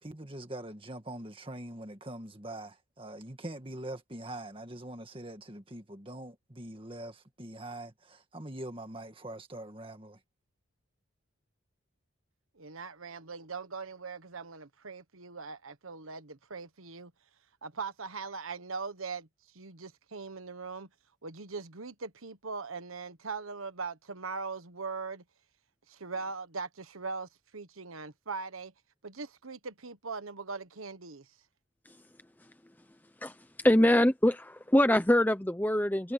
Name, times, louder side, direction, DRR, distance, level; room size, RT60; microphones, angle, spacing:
voice 1, 0.0-10.2, right 1 dB, 25° right, 1.9 m, -43 dB
voice 2, 12.6-17.1 17.6-19.3 19.5-20.9 21.2-25.2 25.9-28.7 29.0-31.2, right 4 dB, 85° right, 1.4 m, -40 dB
voice 3, 33.6-36.1, left 1 dB, 10° left, 0.7 m, -24 dB
head